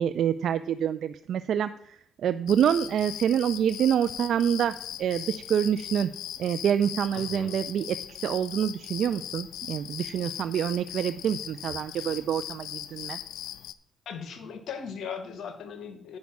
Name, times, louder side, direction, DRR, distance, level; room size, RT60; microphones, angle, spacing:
voice 1, 0.0-6.1 6.4-13.2, right 9 dB, 70° right, 11 dB, 0.3 m, -27 dB
sound 1, 2.5-13.7, left 12 dB, 85° left, 0.4 m, -39 dB
voice 2, 7.1-7.5 14.0-16.2, left 6 dB, 70° left, 8 dB, 1.3 m, -38 dB
9.5 x 5.3 x 5.9 m, 0.67 s
cardioid pair, 90°, 0 cm